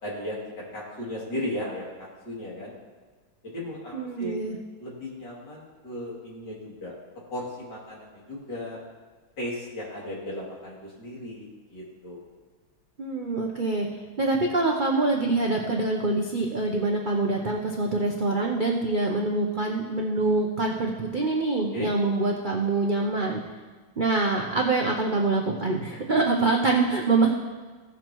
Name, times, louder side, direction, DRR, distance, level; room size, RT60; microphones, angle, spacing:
voice 1, 0.0-2.7 3.4-4.4 4.8-7.0 7.3-8.8 9.4-12.2 21.7-21.9, left 1 dB, 60° left, -6 dB, 3.4 m, -36 dB
voice 2, 3.9-4.6 13.0-13.9 14.2-23.4 24.0-27.3, right 3 dB, 80° right, -1 dB, 0.4 m, -25 dB
16.5 x 7.2 x 3.0 m, 1.4 s
omnidirectional pair, 2.1 m